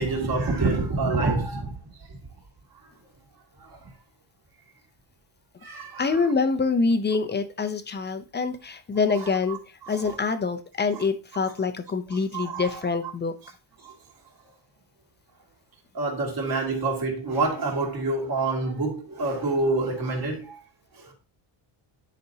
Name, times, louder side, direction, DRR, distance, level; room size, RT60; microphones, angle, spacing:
voice 1, 0.0-1.8 3.6-3.8 5.6-6.1 9.1-9.6 9.9-10.2 12.1-12.7 13.8-13.9 15.9-20.6 21.0-21.1, right 3 dB, 45° right, 2.5 m, -27 dB
voice 2, 6.0-9.6 9.9-13.3, left 4 dB, 20° left, 0.6 m, -25 dB
9.7 x 5.2 x 2.7 m
cardioid pair, 150°, 48 cm